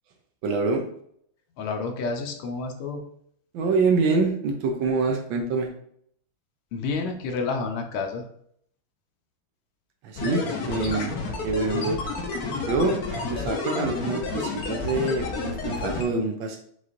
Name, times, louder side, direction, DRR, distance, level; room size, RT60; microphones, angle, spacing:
voice 1, 0.4-0.8 3.5-5.7 10.0-11.1 11.4-12.0 12.7-16.6, right 3 dB, 75° right, 3 dB, 1.2 m, -25 dB
voice 2, 1.6-3.0 6.7-8.2, left 4 dB, 80° left, 4 dB, 1.5 m, -29 dB
sound 1, 10.2-16.0, left 4 dB, 60° left, 1.0 m, -30 dB
5.6 x 3.1 x 2.5 m, 0.66 s
omnidirectional pair, 2.4 m